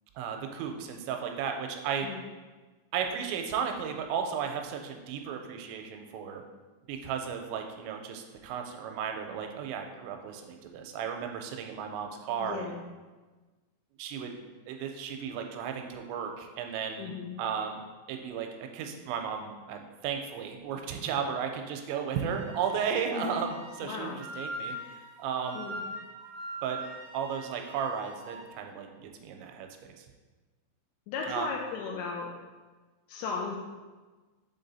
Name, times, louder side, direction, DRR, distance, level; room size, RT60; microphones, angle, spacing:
voice 1, 0.2-2.1 2.9-6.4 6.9-12.8 14.0-14.4 14.7-17.8 18.1-25.6 26.6-26.8 27.1-30.1 31.3-31.5, right 7 dB, 90° right, 4 dB, 2.9 m, -34 dB
voice 2, 12.4-12.8 17.0-17.4 23.1-23.4 23.8-24.2 25.5-25.8 31.1-32.3 33.1-33.6, left 5 dB, 85° left, -1 dB, 2.9 m, -36 dB
Wind instrument woodwind instrument, 22.1-28.5, equal, 65° right, 2.7 m, -43 dB
7.1 x 3.9 x 4.0 m, 1.3 s
omnidirectional pair, 5.2 m